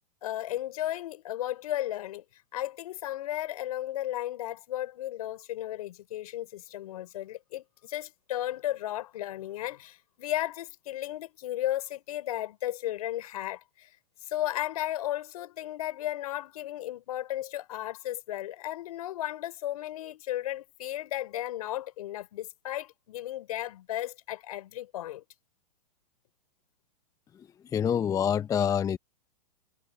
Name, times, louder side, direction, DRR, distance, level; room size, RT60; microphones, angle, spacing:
voice 1, 0.2-2.2 2.5-13.9 14.3-25.2, left 13 dB, 65° left, 4.6 m, -34 dB
voice 2, 27.7-29.0, left 8 dB, 15° left, 0.6 m, -26 dB
hypercardioid pair, 120°, 21 cm